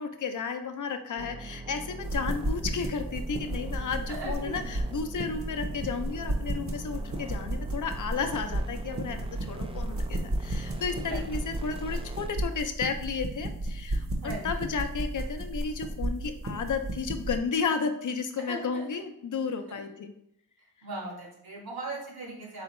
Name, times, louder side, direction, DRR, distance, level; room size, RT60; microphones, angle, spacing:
voice 1, 0.0-20.1, left 5 dB, 50° left, 7 dB, 0.6 m, -33 dB
sound 1, 1.2-12.3, right 2 dB, 15° right, 0.3 m, -42 dB
sound 2, 2.0-17.4, right 1 dB, 35° right, 0.9 m, -33 dB
voice 2, 4.1-4.7 11.1-11.2 14.2-14.5 18.5-19.0 19.7-19.8 20.8-22.6, right 2 dB, 70° right, -2 dB, 1.6 m, -38 dB
4.0 x 3.4 x 3.0 m, 0.74 s
cardioid pair, 55°, 38 cm